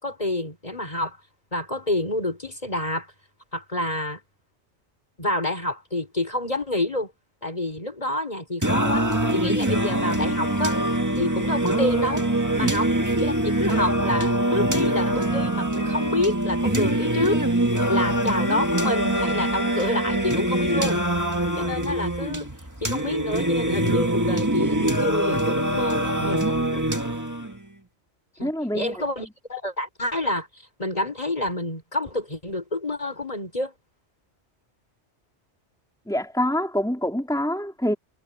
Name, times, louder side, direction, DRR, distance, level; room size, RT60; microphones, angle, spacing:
voice 1, 0.0-1.2 1.5-3.1 3.5-4.2 5.2-7.1 7.4-9.1 9.3-10.8 11.2-12.2 12.6-12.9 13.2-17.4 17.9-21.0 21.6-22.5 22.8-27.0 28.4-33.7, left 1 dB, 35° left, 5.6 m, -28 dB
Singing, 8.6-27.6, right 1 dB, 15° right, 1.9 m, -24 dB
voice 2, 28.4-28.9 36.1-37.9, equal, 5° left, 3.2 m, -25 dB
omnidirectional pair, 1.2 m